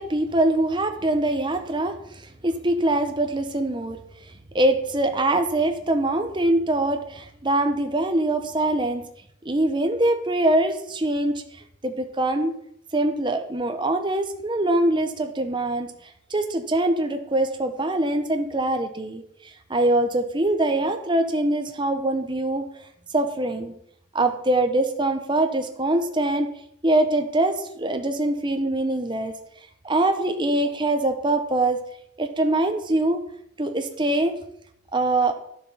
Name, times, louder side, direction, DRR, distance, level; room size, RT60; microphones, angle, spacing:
voice 1, 0.0-4.0 4.5-9.1 9.4-11.4 11.8-12.5 12.9-15.9 16.3-22.6 23.1-23.7 24.1-26.5 26.8-29.3 29.8-31.8 32.2-33.2 33.6-34.3 34.9-35.3, right 1 dB, 25° right, 6 dB, 1.0 m, -23 dB
10.5 x 7.2 x 5.7 m, 0.71 s
head